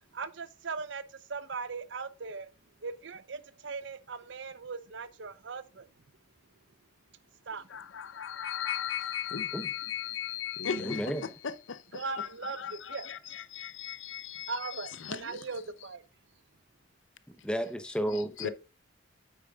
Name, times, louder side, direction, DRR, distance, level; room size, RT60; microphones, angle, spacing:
voice 1, 0.1-2.5 2.8-5.9 7.4-7.7 11.9-13.4 14.5-16.0, right 4 dB, 65° right, 0.8 m, -39 dB
voice 2, 7.7-15.4 18.4-18.5, left 8 dB, 75° left, 0.7 m, -37 dB
voice 3, 10.8-11.3 17.3-18.5, equal, 5° left, 0.8 m, -32 dB
9.0 x 8.3 x 2.4 m
head